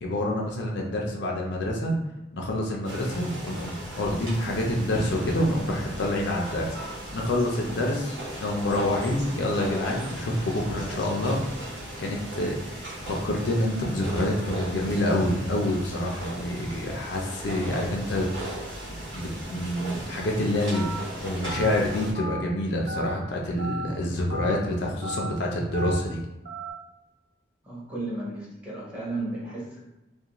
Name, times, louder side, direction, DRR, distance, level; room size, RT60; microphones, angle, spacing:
voice 1, 0.0-2.0 2.3-6.8 7.1-11.4 12.0-18.3 19.1-20.9 21.2-26.2, left 1 dB, 60° left, -1 dB, 0.4 m, -27 dB
sound 1, 2.8-22.1, right 1 dB, 75° right, 1.0 m, -37 dB
Telephone, 20.7-21.0 21.4-21.7 22.1-22.4 22.9-23.1 23.6-23.9 24.3-24.6 25.0-25.3 25.7-26.0 26.4-26.7, right 1 dB, 45° right, 0.5 m, -34 dB
voice 2, 27.6-29.8, right 2 dB, 5° right, -7 dB, 0.8 m, -34 dB
2.4 x 2.2 x 2.9 m, 0.97 s
head